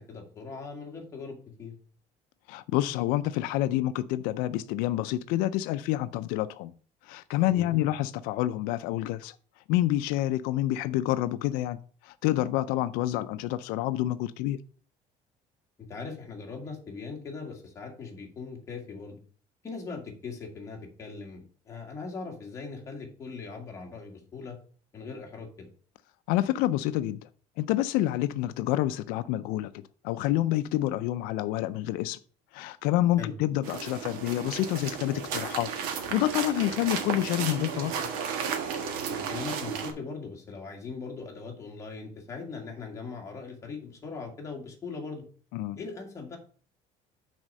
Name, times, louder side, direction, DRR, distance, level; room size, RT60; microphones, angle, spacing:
voice 1, 0.0-1.7 7.5-7.9 15.9-19.2 19.6-24.6 24.9-25.7 33.2-33.3 39.1-45.2 45.8-46.4, left 4 dB, 20° left, 0 dB, 1.7 m, -40 dB
voice 2, 2.5-6.7 7.0-9.4 9.7-14.6 26.3-27.3 27.6-32.2 32.5-37.9 45.5-45.8, left 14 dB, 90° left, 13 dB, 0.4 m, -28 dB
sound 1, 33.6-39.9, right 7 dB, 85° right, 1.5 m, -33 dB
6.2 x 4.2 x 6.4 m, 0.42 s
cardioid pair, 170°, 15 cm